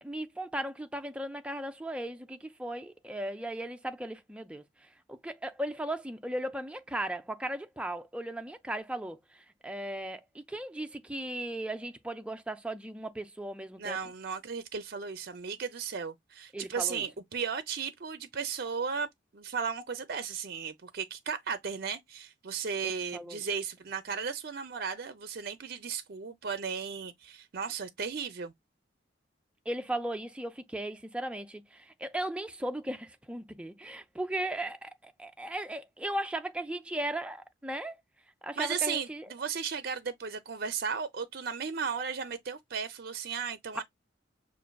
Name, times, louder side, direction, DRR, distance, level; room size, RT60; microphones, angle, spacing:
voice 1, 0.0-4.6 5.1-14.0 16.5-17.1 23.1-23.4 29.7-37.9 38.4-39.3, right 1 dB, 5° right, 0.5 m, -37 dB
voice 2, 13.8-19.1 19.3-28.5 38.6-43.8, right 6 dB, 55° right, 0.5 m, -35 dB
6.1 x 2.5 x 2.2 m
head